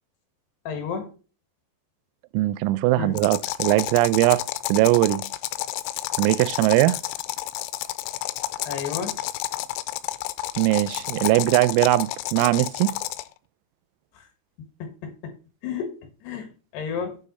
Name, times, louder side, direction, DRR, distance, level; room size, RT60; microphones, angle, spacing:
voice 1, 0.6-1.1 3.0-3.2 8.6-9.2 14.1-14.3 14.6-15.4 15.6-17.2, left 6 dB, 65° left, 3.1 m, -32 dB
voice 2, 2.3-4.4 4.7-5.2 6.2-7.0 10.6-13.0, right 17 dB, 85° right, 3.3 m, -20 dB
sound 1, 3.2-13.3, left 15 dB, 85° left, 2.9 m, -30 dB
9.0 x 7.3 x 4.2 m
omnidirectional pair, 6.0 m